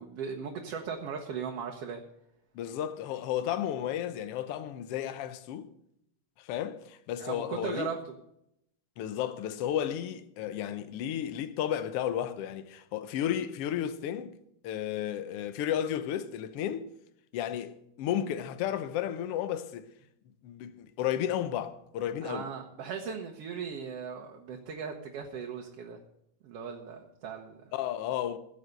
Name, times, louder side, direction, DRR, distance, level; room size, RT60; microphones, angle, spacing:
voice 1, 0.0-2.0 7.2-8.0 22.2-26.0 26.4-27.7, right 6 dB, 60° right, 1.9 m, -38 dB
voice 2, 2.5-5.7 6.4-7.9 9.0-14.3 14.6-16.9 17.3-19.9 20.4-22.5 27.7-28.4, left 10 dB, 65° left, 1.6 m, -33 dB
16.0 x 7.3 x 6.6 m
omnidirectional pair, 3.4 m